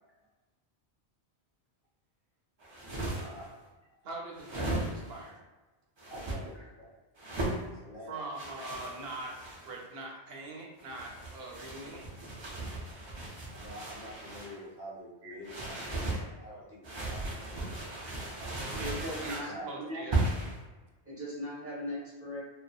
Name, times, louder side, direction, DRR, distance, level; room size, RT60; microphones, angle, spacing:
sound 1, 2.6-3.5 4.4-5.2 6.0-6.4 7.2-7.6 8.3-9.8 10.8-14.6 15.4-16.2 16.8-19.5 20.1-20.6, right 2 dB, 50° right, 0.3 m, -36 dB
voice 1, 3.1-3.7 6.1-6.9 7.8-8.3 13.5-17.8 19.4-19.7, equal, 60° left, -5 dB, 1.0 m, -47 dB
voice 2, 4.0-5.3 8.1-12.0 19.2-20.2, right 2 dB, 70° right, -1 dB, 0.8 m, -42 dB
voice 3, 18.8-20.0 21.0-22.4, equal, 15° right, -8 dB, 0.8 m, -39 dB
2.7 x 2.1 x 2.2 m, 1.2 s
omnidirectional pair, 1.1 m